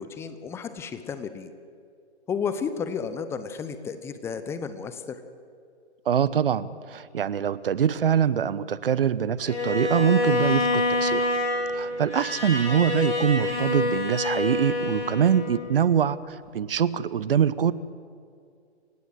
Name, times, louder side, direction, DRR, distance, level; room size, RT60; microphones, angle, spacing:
voice 1, 0.0-1.5 2.3-5.2, left 6 dB, 10° left, 11 dB, 0.8 m, -32 dB
voice 2, 6.1-11.3 11.7-17.7, right 8 dB, 55° right, 17 dB, 1.0 m, -24 dB
Bowed string instrument, 9.5-15.7, left 2 dB, 85° left, 8.0 m, -27 dB
28.0 x 16.5 x 8.0 m, 2.3 s
figure-of-eight pair, 135°, 34 cm